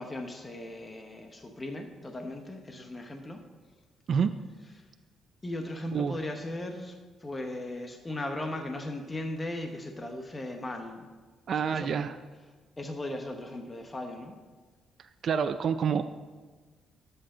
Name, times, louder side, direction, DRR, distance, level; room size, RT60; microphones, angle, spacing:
voice 1, 0.0-3.4 5.4-11.1 11.7-11.9 12.8-14.4, left 1 dB, 25° left, 4 dB, 0.9 m, -37 dB
voice 2, 11.5-12.2 15.0-16.0, right 6 dB, 55° right, 10 dB, 0.4 m, -28 dB
12.5 x 8.0 x 3.8 m, 1.4 s
cardioid pair, 90°, 0 cm